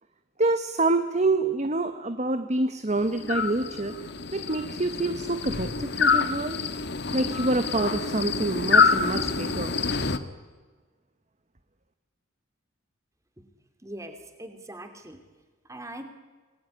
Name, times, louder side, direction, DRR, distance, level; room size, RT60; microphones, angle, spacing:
voice 1, 0.4-3.9 4.3-6.6 7.1-9.7, right 2 dB, 35° right, 9 dB, 1.2 m, -26 dB
sound 1, 3.0-10.2, left 5 dB, 55° left, 1.5 m, -26 dB
voice 2, 13.8-15.2 15.7-16.0, right 1 dB, 15° right, 7 dB, 3.1 m, -41 dB
27.0 x 20.5 x 9.8 m, 1.4 s
head